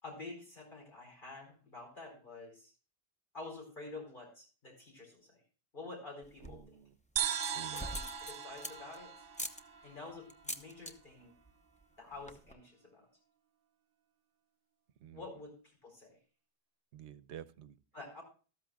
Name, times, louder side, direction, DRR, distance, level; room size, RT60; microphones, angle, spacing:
voice 1, 0.0-2.7 3.3-5.4 5.7-6.8 7.7-9.1 9.8-11.3 12.0-13.1 15.1-16.2 17.9-18.2, left 3 dB, 50° left, 1 dB, 4.7 m, -49 dB
sound 1, 6.2-6.7 7.2-9.0 9.3-9.6 10.3-10.9 11.2-11.5 11.8-11.9 12.1-12.5, equal, 10° left, 0.6 m, -43 dB
voice 2, 6.4-6.9 7.4-7.9 15.0-15.2 16.9-17.8, right 10 dB, 85° right, 16 dB, 1.0 m, -50 dB
sound 2, 7.2-10.7, right 8 dB, 60° right, 0.9 m, -39 dB
13.5 x 13.5 x 2.3 m, 0.37 s
omnidirectional pair, 1.1 m